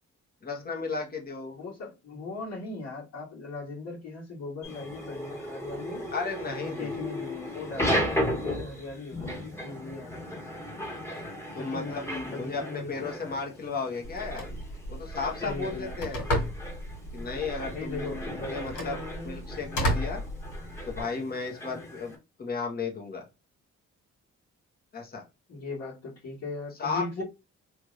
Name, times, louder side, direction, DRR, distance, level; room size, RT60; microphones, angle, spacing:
voice 1, 0.4-1.6 6.1-7.0 11.6-14.5 14.9-16.2 17.1-19.0 19.2-20.2 20.9-22.1 22.4-23.2 24.9-25.2 26.8-27.2, left 4 dB, 30° left, 1.2 m, -34 dB
voice 2, 1.5-6.0 6.5-10.1 11.5-13.2 15.4-16.1 17.7-19.4 25.5-27.2, left 3 dB, 60° left, 1.8 m, -39 dB
sound 1, 4.6-22.2, equal, 10° left, 1.3 m, -36 dB
Telephone, 14.0-21.0, equal, 75° left, 2.0 m, -34 dB
3.3 x 2.5 x 3.1 m
cardioid pair, 90°, 30 cm